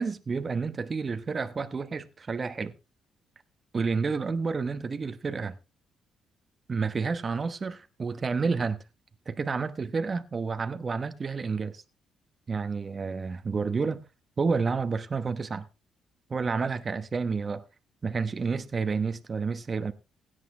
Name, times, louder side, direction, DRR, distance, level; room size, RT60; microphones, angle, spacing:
voice 1, 0.0-2.7 3.7-5.6 6.7-8.8 9.3-11.8 12.5-14.0 14.4-15.7 16.3-17.6 18.0-19.9, right 4 dB, 35° right, 1.0 m, -30 dB
17.0 x 9.5 x 3.3 m
cardioid pair, 90°, 0 cm